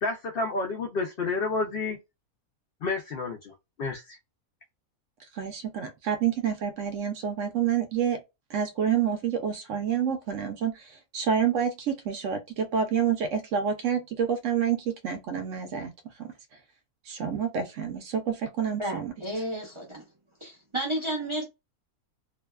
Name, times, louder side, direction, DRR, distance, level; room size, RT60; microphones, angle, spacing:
voice 1, 0.0-2.0 2.8-4.2, left 3 dB, 80° left, 0.5 m, -30 dB
voice 2, 5.3-8.2 8.5-15.9 16.2-16.3 17.1-19.1, right 8 dB, 70° right, 0.8 m, -28 dB
voice 3, 18.8-20.0 20.4-21.4, right 1 dB, 45° right, 0.4 m, -32 dB
2.6 x 2.2 x 2.2 m
omnidirectional pair, 1.5 m